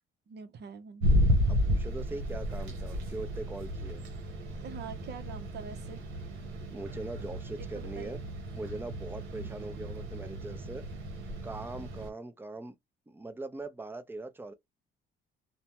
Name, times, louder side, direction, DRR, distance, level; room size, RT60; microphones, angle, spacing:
voice 1, 0.3-1.1 4.4-6.1 7.6-8.2 9.3-9.6, right 6 dB, 60° right, 0.8 m, -45 dB
sound 1, 1.0-12.1, equal, 85° right, 0.9 m, -32 dB
voice 2, 1.6-4.0 6.7-8.2 8.5-10.9 11.4-12.7 13.1-14.5, right 2 dB, 10° right, 0.5 m, -41 dB
2.7 x 2.1 x 2.8 m
cardioid pair, 90°, 20 cm